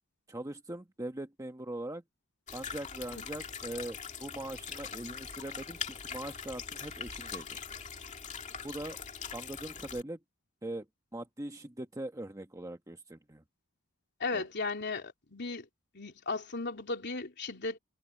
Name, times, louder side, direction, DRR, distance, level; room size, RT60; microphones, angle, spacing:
voice 1, 0.3-2.0 2.5-7.6 8.6-9.0 9.3-10.2 10.6-10.9 11.1-13.4 14.3-14.4, right 1 dB, 15° right, 1.2 m, -41 dB
sound 1, 2.5-10.0, left 6 dB, 35° left, 2.3 m, -42 dB
voice 2, 14.2-15.7 15.9-17.8, left 3 dB, 50° left, 3.4 m, -36 dB
head